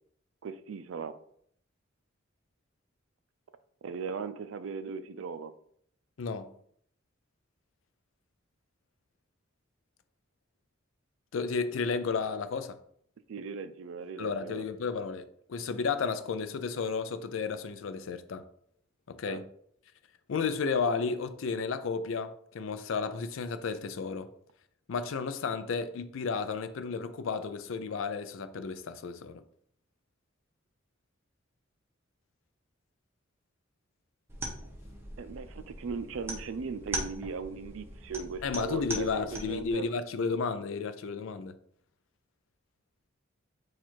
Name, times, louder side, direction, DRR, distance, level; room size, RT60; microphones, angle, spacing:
voice 1, 0.4-1.2 3.8-5.5 13.3-14.7 19.3-19.4 35.2-39.9, right 5 dB, 80° right, 0.4 m, -38 dB
voice 2, 11.3-12.8 14.2-18.4 19.1-19.4 20.3-24.3 24.9-29.4 38.4-41.5, left 5 dB, 75° left, 0.4 m, -32 dB
sound 1, 34.3-39.7, right 1 dB, 10° right, 0.7 m, -40 dB
4.3 x 2.5 x 4.4 m
head